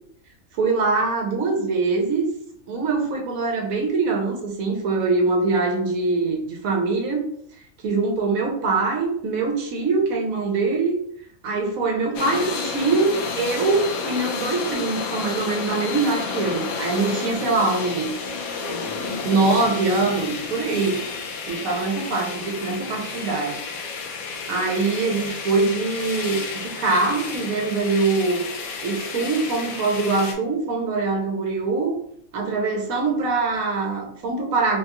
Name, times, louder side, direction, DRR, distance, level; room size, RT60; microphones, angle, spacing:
voice 1, 0.5-2.3 2.7-7.3 7.8-10.9 11.4-18.1 19.2-21.0 21.5-23.6 24.5-28.4 28.8-32.0 32.3-34.8, right 3 dB, 80° right, 1 dB, 1.2 m, -23 dB
sound 1, 12.1-30.3, left 4 dB, 80° left, 1.1 m, -31 dB
3.6 x 2.3 x 2.9 m, 0.67 s
omnidirectional pair, 1.5 m